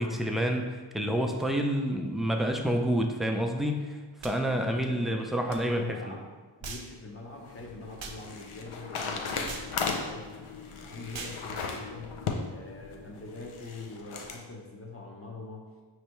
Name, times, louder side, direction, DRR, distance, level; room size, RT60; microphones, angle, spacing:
voice 1, 0.0-4.0 4.2-6.2, equal, ahead, 3 dB, 0.3 m, -28 dB
sound 1, 4.2-4.4 5.5-5.6 6.6-6.9 8.0-8.2 9.5-9.7 11.1-11.4, right 4 dB, 65° right, 0.6 m, -40 dB
voice 2, 4.4-10.4 10.8-15.7, left 2 dB, 30° left, -1 dB, 0.8 m, -44 dB
sound 2, 7.1-14.4, left 4 dB, 80° left, 0.6 m, -37 dB
5.4 x 3.2 x 3.0 m, 1.3 s
wide cardioid pair, 45°, 49 cm